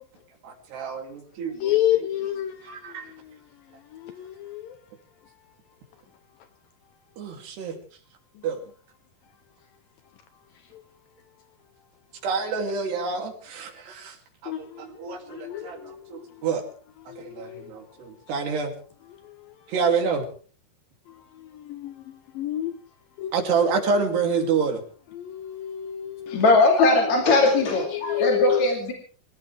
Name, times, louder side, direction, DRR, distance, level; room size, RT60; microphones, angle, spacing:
voice 1, 0.4-1.7 2.6-3.1 7.2-7.8 8.4-8.6 12.2-14.2 14.4-16.6 17.2-18.7 19.7-20.3 23.3-24.8, right 5 dB, 90° right, 5.0 m, -27 dB
voice 2, 1.6-2.7 3.9-4.8 14.5-14.8 15.3-16.3 17.1-17.7 21.5-22.0 22.4-22.7 23.2-23.3 24.5-24.6 25.1-26.4 27.8-28.7, left 13 dB, 75° left, 2.4 m, -29 dB
voice 3, 26.3-28.9, left 3 dB, 50° left, 3.6 m, -19 dB
26.0 x 16.0 x 3.5 m
omnidirectional pair, 4.6 m